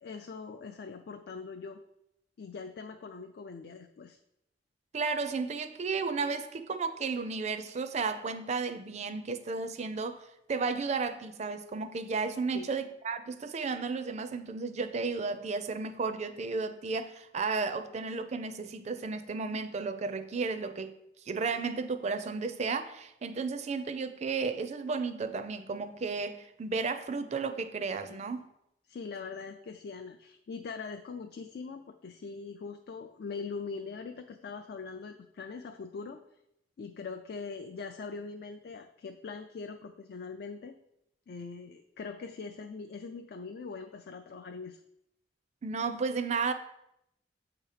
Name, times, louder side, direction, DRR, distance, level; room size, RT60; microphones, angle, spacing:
voice 1, 0.0-1.8 2.4-4.2 12.5-12.7 28.1-28.2 28.9-36.2 36.8-40.7 41.3-44.8, left 4 dB, 60° left, 6 dB, 0.3 m, -42 dB
voice 2, 4.9-21.0 21.2-28.4 45.6-46.5, right 4 dB, 40° right, 10 dB, 0.4 m, -33 dB
7.7 x 2.9 x 4.8 m, 0.80 s
head